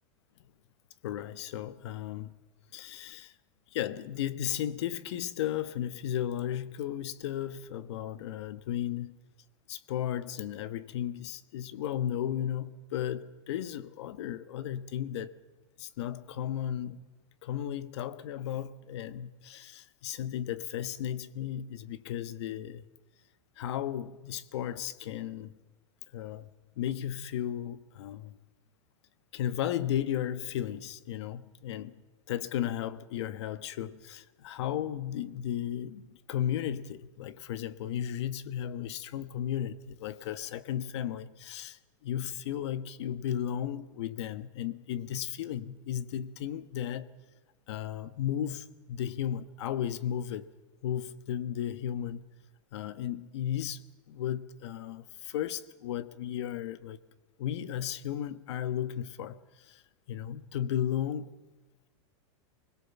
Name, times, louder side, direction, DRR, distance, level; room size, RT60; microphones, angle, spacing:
voice 1, 1.0-2.3 2.7-3.3 3.7-9.2 9.7-15.3 15.8-17.0 17.4-22.8 23.6-25.5 26.1-26.5 26.8-28.4 29.3-31.9 32.3-47.1 47.7-50.5 50.8-52.2 52.7-57.0 57.4-59.8 60.1-61.3, left 10 dB, 65° left, 1.2 m, -35 dB
24.5 x 21.5 x 7.2 m
supercardioid pair, 175°, 16 cm